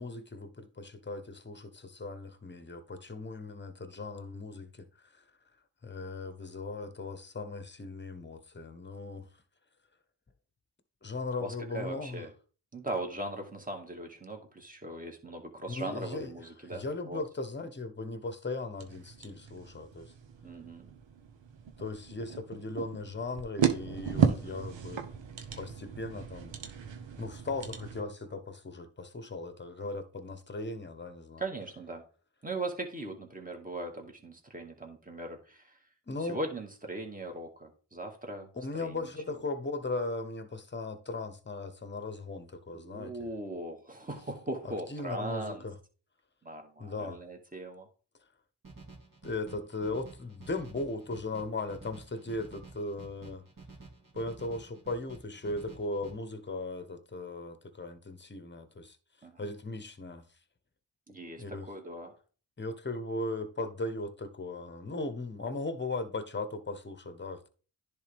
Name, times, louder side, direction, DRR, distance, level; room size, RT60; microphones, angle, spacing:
voice 1, 0.0-5.2 5.8-9.3 11.0-12.2 15.7-16.3 16.6-20.1 21.8-25.0 25.6-26.6 27.2-31.4 36.1-36.4 38.5-43.3 44.6-45.8 46.8-47.2 49.2-53.4 54.1-59.0 59.4-60.3 61.4-61.7 62.6-67.5, left 2 dB, 25° left, 1.1 m, -38 dB
voice 2, 11.4-12.3 12.7-17.2 20.4-20.9 24.3-24.7 31.4-32.0 32.4-35.8 36.2-38.5 38.8-39.4 42.7-45.7 46.4-47.9 59.2-59.4 61.1-62.2, right 2 dB, 20° right, 2.0 m, -39 dB
sound 1, 18.8-28.0, right 7 dB, 70° right, 1.1 m, -34 dB
sound 2, 48.6-56.1, right 3 dB, 45° right, 2.5 m, -51 dB
10.5 x 3.5 x 3.5 m
supercardioid pair, 45°, 46 cm